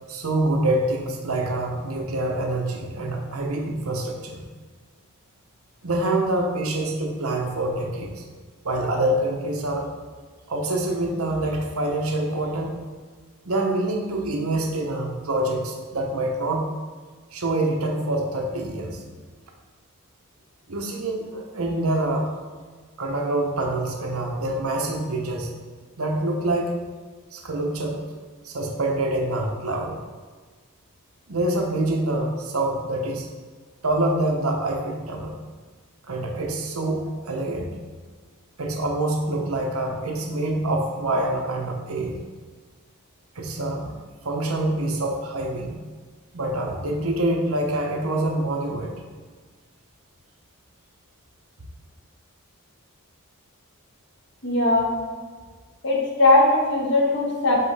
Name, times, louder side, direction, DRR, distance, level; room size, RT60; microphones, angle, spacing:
voice 1, 0.1-4.4 5.8-8.2 8.6-9.9 10.5-12.7 13.4-16.6 17.3-19.0 20.7-22.3 23.0-25.5 26.0-26.7 27.3-28.0 28.4-30.0 31.3-33.3 33.8-35.3 36.1-37.7 38.6-42.2 43.3-43.9 44.2-45.7 46.3-48.9, right 1 dB, 80° right, 1 dB, 1.0 m, -26 dB
voice 2, 54.4-54.9 55.8-57.7, left 2 dB, 55° left, -2 dB, 1.4 m, -19 dB
7.6 x 4.6 x 3.4 m, 1.5 s
head